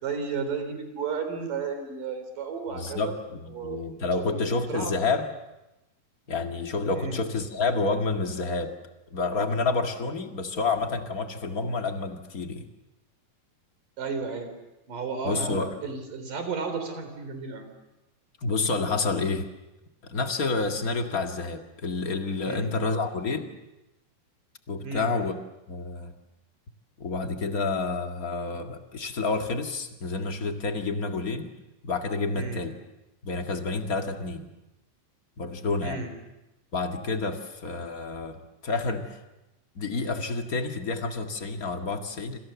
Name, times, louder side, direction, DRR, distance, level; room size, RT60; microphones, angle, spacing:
voice 1, 0.0-3.1 3.5-4.9 6.9-7.2 14.0-14.5 14.9-17.7 22.5-22.7 24.8-25.3 32.3-32.6 35.8-36.1, right 5 dB, 70° right, 8 dB, 5.3 m, -33 dB
voice 2, 2.7-5.3 6.3-8.7 9.1-12.7 15.2-15.7 18.4-19.5 20.0-23.5 24.7-25.4 25.7-26.1 27.0-31.5 31.8-32.8 33.2-34.5 35.4-36.0 36.7-39.2 39.7-42.4, left 3 dB, 35° left, 5 dB, 1.7 m, -29 dB
27.5 x 27.0 x 7.1 m, 0.95 s
omnidirectional pair, 4.0 m